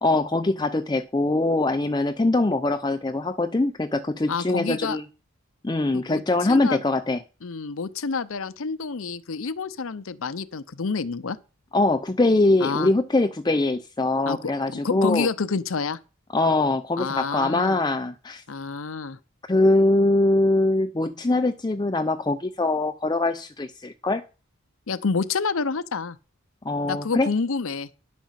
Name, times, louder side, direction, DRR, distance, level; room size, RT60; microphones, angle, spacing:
voice 1, 0.0-5.0 5.6-7.2 11.7-15.3 16.3-18.4 19.5-24.2 26.6-27.3, left 2 dB, 20° left, 0.4 m, -22 dB
voice 2, 4.3-5.0 5.9-6.2 6.5-6.8 7.4-11.4 12.6-12.9 14.3-14.4 14.7-16.0 17.0-17.8 18.5-19.2 24.9-26.2 26.8-27.9, left 4 dB, 65° left, 0.7 m, -28 dB
10.5 x 5.0 x 7.3 m
head